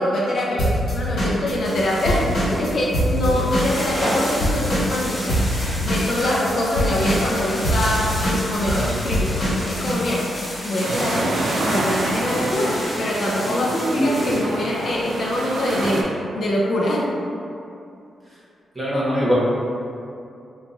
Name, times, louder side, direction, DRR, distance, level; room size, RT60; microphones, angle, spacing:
voice 1, 0.0-5.4 5.8-10.3 10.6-11.3 11.6-17.1, left 1 dB, 50° left, -3 dB, 0.4 m, -24 dB
Drum kit / Drum, 0.6-4.2 4.4-10.0, equal, 65° left, 1.4 m, -23 dB
sound 1, 1.6-14.4, equal, 20° left, 0.8 m, -30 dB
sound 2, 10.8-16.0, right 2 dB, 60° right, 0.4 m, -27 dB
voice 2, 18.7-19.3, equal, 20° right, -9 dB, 1.0 m, -22 dB
2.9 x 2.3 x 3.8 m, 2.6 s
wide cardioid pair, 140°, 0 cm